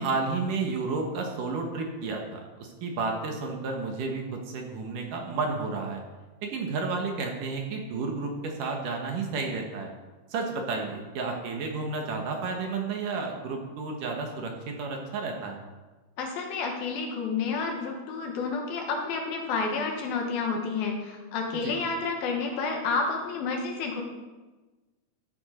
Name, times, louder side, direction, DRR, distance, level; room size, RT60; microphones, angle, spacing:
voice 1, 0.0-6.0 6.4-9.9 10.3-15.6 21.6-21.7, right 4 dB, 65° right, 2 dB, 2.6 m, -31 dB
voice 2, 16.2-24.0, left 4 dB, 75° left, 2 dB, 3.1 m, -30 dB
14.5 x 7.1 x 5.1 m, 1.2 s
omnidirectional pair, 4.5 m